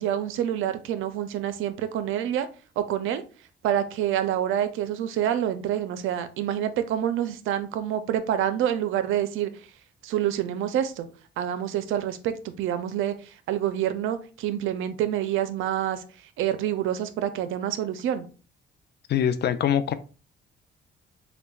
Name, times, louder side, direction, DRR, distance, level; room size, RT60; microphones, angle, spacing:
voice 1, 0.0-2.5 2.8-3.2 3.6-9.5 10.0-11.1 11.4-16.0 16.4-18.3, right 10 dB, 85° right, 11 dB, 0.5 m, -27 dB
voice 2, 19.1-19.9, left 9 dB, 55° left, 13 dB, 0.4 m, -23 dB
6.7 x 2.2 x 2.3 m, 0.37 s
cardioid pair, 90°, 20 cm